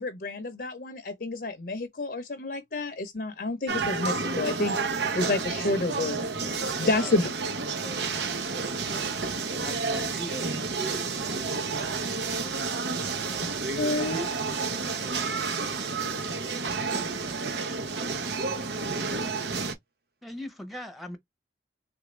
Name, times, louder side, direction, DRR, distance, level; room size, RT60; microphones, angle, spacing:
voice 1, 0.0-4.8 5.1-6.3 6.8-7.3 13.8-14.3, left 2 dB, 55° left, 0.6 m, -29 dB
sound 1, 3.7-19.7, right 4 dB, 80° right, 0.8 m, -30 dB
voice 2, 5.4-7.3 9.6-10.6 20.2-21.2, equal, ahead, 0.8 m, -42 dB
voice 3, 6.2-9.7 10.8-13.8 14.5-18.4 19.0-19.7, right 3 dB, 60° right, 1.1 m, -47 dB
3.5 x 2.5 x 3.0 m
head